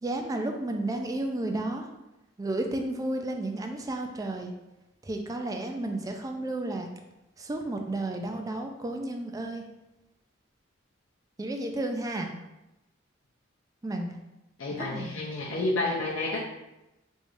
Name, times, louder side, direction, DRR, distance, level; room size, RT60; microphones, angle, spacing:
voice 1, 0.0-1.9 2.4-4.5 5.0-6.9 7.4-9.6 11.4-12.3 13.8-14.1 14.7-15.3, right 2 dB, 20° right, 3 dB, 0.3 m, -32 dB
voice 2, 14.6-16.4, left 2 dB, 75° left, -5 dB, 0.6 m, -30 dB
3.5 x 3.2 x 2.5 m, 0.95 s
head